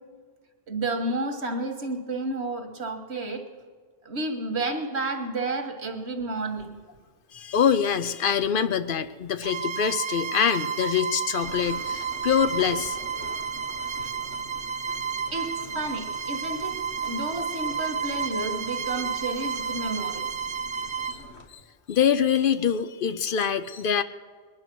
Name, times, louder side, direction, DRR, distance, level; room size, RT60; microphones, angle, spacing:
voice 1, 0.7-3.5 4.1-6.8 15.3-20.6, right 2 dB, 90° right, 5 dB, 1.7 m, -31 dB
voice 2, 7.3-13.0 21.0-21.2 21.5-21.6 21.9-24.0, left 8 dB, 60° left, 12 dB, 0.7 m, -24 dB
Bowed string instrument, 9.4-21.2, right 6 dB, 30° right, 0.6 m, -31 dB
sound 1, 11.4-21.5, left 2 dB, 85° left, 1.5 m, -46 dB
20.5 x 10.5 x 6.1 m, 1.5 s
omnidirectional pair, 1.1 m